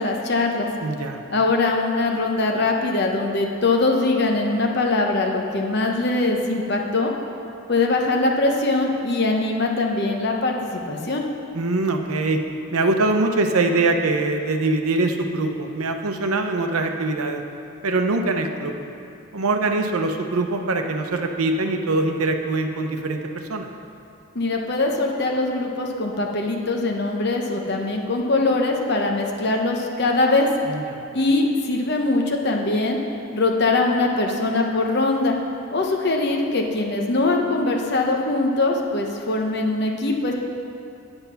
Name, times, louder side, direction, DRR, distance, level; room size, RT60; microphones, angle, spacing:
voice 1, 0.0-0.7 1.3-7.1 7.7-11.2 24.3-30.5 31.1-33.0 33.3-35.4 35.7-40.3, left 2 dB, 50° left, 1 dB, 0.9 m, -22 dB
voice 2, 0.8-1.2 11.5-12.4 12.7-17.4 17.8-18.7 19.3-23.7 30.7-31.0, right 2 dB, 85° right, 5 dB, 0.8 m, -23 dB
8.0 x 8.0 x 5.7 m, 2.6 s
head